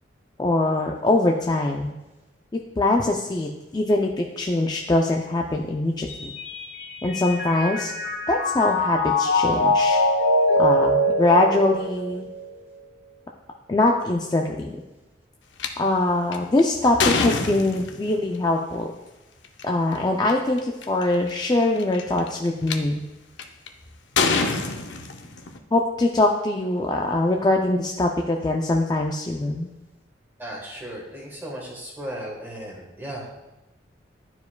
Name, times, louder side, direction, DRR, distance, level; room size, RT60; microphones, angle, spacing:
voice 1, 0.4-1.9 2.8-6.3 7.0-7.9 8.3-10.0 10.6-12.3 13.7-14.7 15.8-18.9 19.6-23.0 25.7-29.7, left 2 dB, 20° left, 1 dB, 0.3 m, -22 dB
Mallet percussion, 6.1-12.5, left 1 dB, 45° left, 1.5 m, -23 dB
sound 1, 15.6-15.7 16.3-18.2 19.4-19.6 20.3-20.4 20.6-21.0 21.8-22.7 23.4-23.7 24.2-25.6, left 4 dB, 70° left, 0.6 m, -25 dB
voice 2, 30.4-33.4, right 1 dB, 10° right, -2 dB, 1.3 m, -36 dB
11.5 x 4.6 x 2.2 m, 1.1 s
head